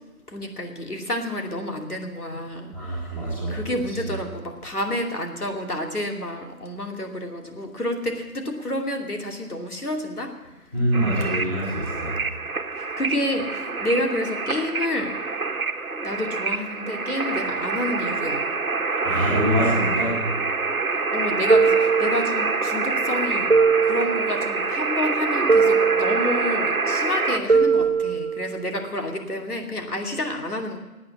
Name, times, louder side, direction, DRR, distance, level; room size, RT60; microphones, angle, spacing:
voice 1, 0.3-10.3 12.8-15.2 15.9-18.4 21.1-23.5 23.8-30.8, left 1 dB, 80° left, 3 dB, 2.8 m, -29 dB
voice 2, 2.7-3.6 4.0-4.1 10.7-12.2 19.0-20.2, equal, 5° left, -8 dB, 2.1 m, -25 dB
sound 1, 10.9-27.4, right 4 dB, 65° right, 1.3 m, -26 dB
sound 2, 21.5-22.7 23.5-24.7 25.5-26.7 27.5-28.7, right 5 dB, 45° right, 1.0 m, -21 dB
16.5 x 9.0 x 8.6 m, 1.1 s
figure-of-eight pair, 160°, 45 cm